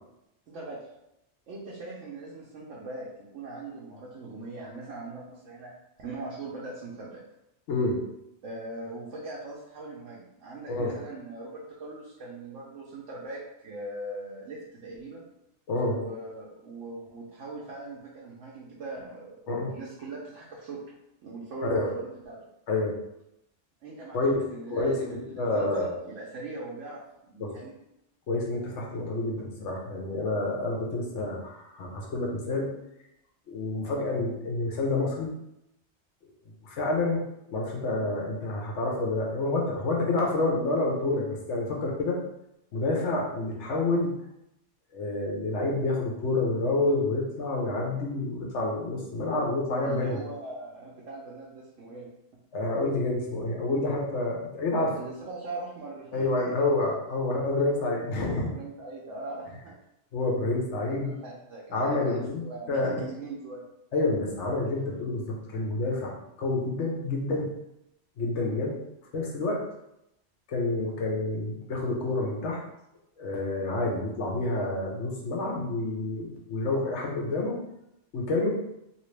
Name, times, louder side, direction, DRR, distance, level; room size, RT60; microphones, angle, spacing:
voice 1, 0.5-0.8 1.5-5.7 6.0-7.2 8.4-15.2 15.9-19.4 19.7-20.8 21.2-22.4 23.8-24.2 24.5-27.0 27.3-27.8 49.8-52.1 54.9-57.0 58.5-59.7 60.8-63.7, right 2 dB, 85° right, -5 dB, 1.0 m, -40 dB
voice 2, 15.7-16.0 19.5-19.7 21.7-21.9 22.7-22.9 24.1-24.4 24.7-25.9 27.4-27.5 28.3-32.7 33.5-35.3 36.6-37.2 37.5-42.2 42.7-44.1 44.9-50.2 52.5-55.0 56.1-58.6 60.1-61.1 61.7-63.0 63.9-67.5 68.2-68.8 69.1-69.6 70.5-72.6 73.2-77.6 78.1-78.5, left 2 dB, 75° left, -1 dB, 1.1 m, -28 dB
2.9 x 2.9 x 3.2 m, 0.84 s
omnidirectional pair, 1.2 m